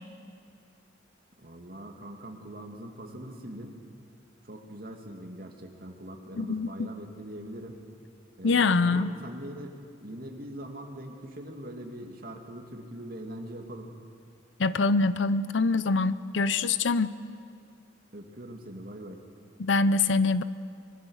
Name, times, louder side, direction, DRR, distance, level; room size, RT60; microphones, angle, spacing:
voice 1, 1.4-3.8 4.4-7.8 8.4-13.9 18.1-19.2, right 1 dB, 50° right, 2.5 m, -42 dB
voice 2, 6.4-6.7 8.4-9.1 14.6-17.1 19.6-20.4, left 3 dB, 75° left, 0.7 m, -24 dB
24.5 x 22.5 x 6.5 m
head